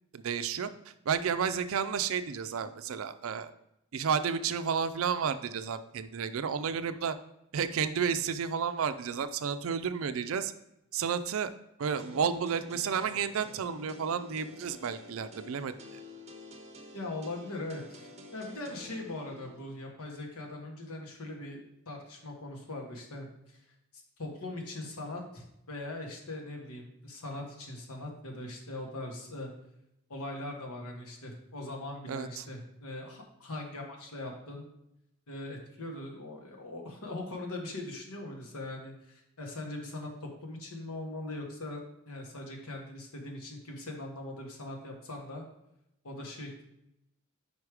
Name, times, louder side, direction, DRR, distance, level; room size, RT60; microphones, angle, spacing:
voice 1, 0.1-0.7 1.1-3.5 3.9-7.2 7.5-10.5 10.9-11.5 11.8-15.7 32.1-32.4, right 6 dB, 70° right, 11 dB, 0.4 m, -31 dB
sound 1, 12.0-19.6, left 1 dB, 30° right, 0.6 m, -50 dB
voice 2, 16.9-21.6 21.9-23.6 24.2-29.5 30.1-34.7 35.3-45.4 46.0-46.6, left 2 dB, 90° left, 1 dB, 1.4 m, -41 dB
5.2 x 4.8 x 4.8 m, 0.83 s
head